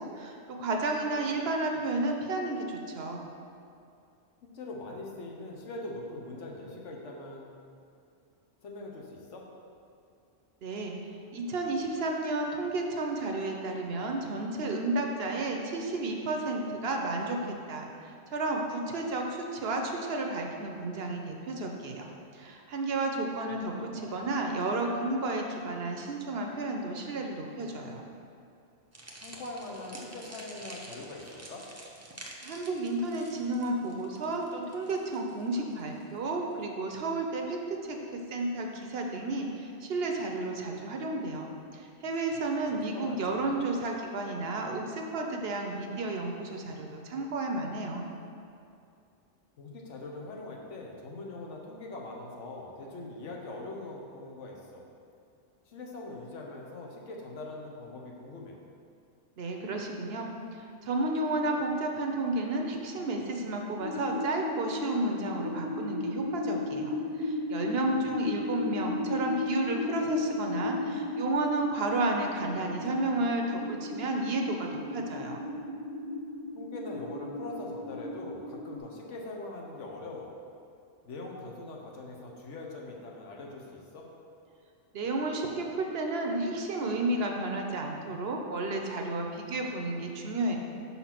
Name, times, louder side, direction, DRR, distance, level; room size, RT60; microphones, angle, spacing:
voice 1, 0.0-3.2 10.6-28.0 32.4-48.1 59.4-75.4 84.9-90.6, right 2 dB, 60° right, 2 dB, 0.8 m, -32 dB
voice 2, 4.5-7.5 8.6-9.4 23.5-23.6 23.9-24.3 29.2-31.7 42.7-43.5 49.6-54.9 55.7-58.6 68.0-68.2 68.8-69.0 76.5-80.3 81.0-84.1, left 2 dB, 75° left, -1 dB, 1.2 m, -42 dB
sound 1, 28.9-36.2, right 1 dB, 20° right, 0.5 m, -48 dB
sound 2, 63.8-78.8, left 3 dB, 45° left, 0.6 m, -35 dB
5.6 x 4.3 x 5.8 m, 2.5 s
omnidirectional pair, 1.2 m